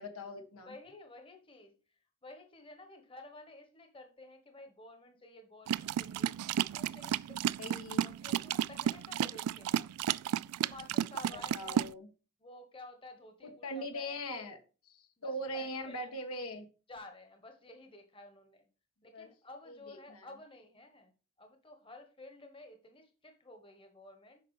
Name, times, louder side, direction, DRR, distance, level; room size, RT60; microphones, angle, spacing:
voice 1, 0.0-0.7 7.6-8.1 11.5-12.1 13.4-14.6 14.9-16.7 19.1-19.3 19.7-20.3, equal, 80° left, 4 dB, 1.9 m, -41 dB
voice 2, 0.6-6.3 6.7-7.4 8.0-9.9 10.5-12.0 12.4-14.5 15.2-16.1 16.9-18.6 19.0-21.1 21.4-24.4, left 2 dB, 25° left, 6 dB, 1.3 m, -53 dB
sound 1, 5.7-11.9, right 10 dB, 90° right, 0.3 m, -32 dB
9.4 x 5.8 x 4.9 m, 0.35 s
head